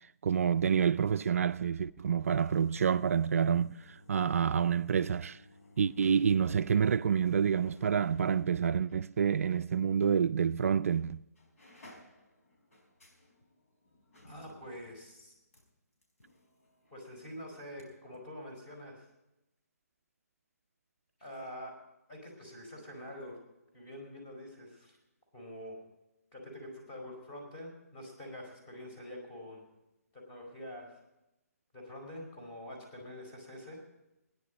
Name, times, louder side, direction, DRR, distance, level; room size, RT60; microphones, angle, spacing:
voice 1, 0.2-5.4 5.8-11.2, right 7 dB, 60° right, 0.4 m, -28 dB
sound 1, 1.9-9.7 10.0-10.1 10.9-11.1 11.3-17.9 18.1-18.2, left 1 dB, 60° left, 4.9 m, -60 dB
voice 2, 14.2-15.3 16.9-19.0 21.2-21.8 22.1-23.4 23.7-25.0 25.3-25.8 26.3-29.6 30.1-30.9 31.7-33.8, left 1 dB, 20° left, 4.6 m, -46 dB
16.5 x 10.5 x 5.2 m
hypercardioid pair, 160°, 9 cm